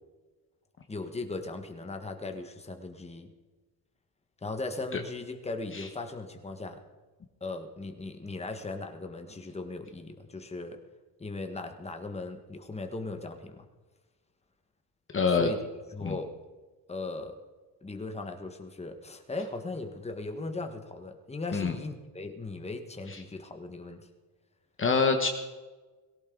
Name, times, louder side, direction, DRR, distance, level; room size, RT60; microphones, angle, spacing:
voice 1, 0.9-3.3 4.4-6.8 7.4-10.8 11.2-13.6 15.4-15.6 15.9-16.3 16.9-17.4 17.8-24.1, left 3 dB, 15° left, 5 dB, 1.5 m, -38 dB
voice 2, 15.1-15.5 16.0-16.2 21.5-21.7 23.1-23.2 24.8-25.3, left 4 dB, 30° left, 4 dB, 1.3 m, -26 dB
18.5 x 17.0 x 4.0 m, 1.3 s
cardioid pair, 130°, 39 cm